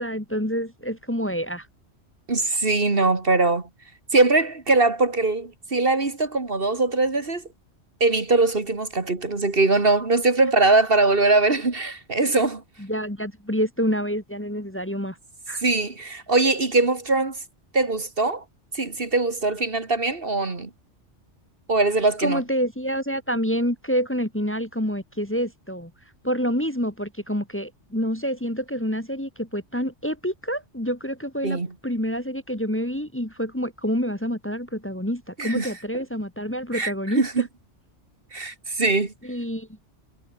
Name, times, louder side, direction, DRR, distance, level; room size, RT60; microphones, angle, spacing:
voice 1, 0.0-1.7 12.8-15.2 15.5-15.6 22.2-25.9 26.2-37.5 39.2-39.7, equal, 10° left, 1.8 m, -27 dB
voice 2, 2.3-3.7 4.1-7.4 8.0-12.6 15.6-17.4 17.7-18.4 18.7-20.7 21.7-22.4 31.4-31.7 35.4-35.7 36.7-37.5 38.3-39.1, right 3 dB, 50° right, 2.4 m, -21 dB
omnidirectional pair, 1.2 m